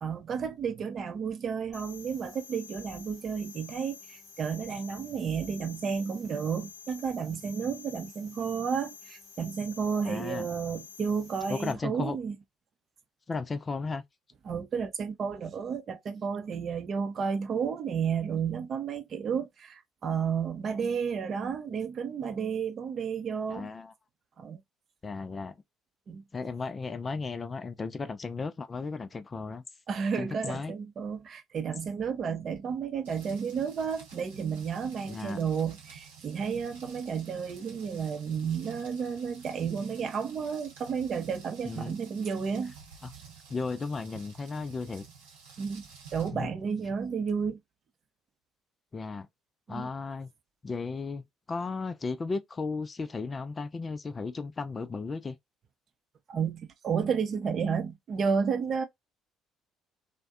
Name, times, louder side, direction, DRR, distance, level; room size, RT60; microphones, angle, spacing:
voice 1, 0.0-12.3 14.4-23.7 24.4-24.6 26.1-26.2 29.9-42.7 45.6-45.8 46.1-47.6 49.7-49.9 56.3-58.8, right 6 dB, 50° right, 0.6 m, -32 dB
sound 1, 1.7-11.7, left 7 dB, 65° left, 0.8 m, -49 dB
voice 2, 10.0-10.5 11.5-12.2 13.3-14.0 23.5-23.9 25.0-25.5 26.3-29.6 30.2-30.7 35.1-35.4 41.7-41.9 43.0-43.1 43.5-45.0 46.3-46.5 48.9-49.3 49.7-50.3 50.6-55.4, left 4 dB, 30° left, 0.4 m, -35 dB
Rain, 33.0-46.3, right 6 dB, 80° right, 0.8 m, -51 dB
2.5 x 2.1 x 2.4 m
hypercardioid pair, 55°, 0 cm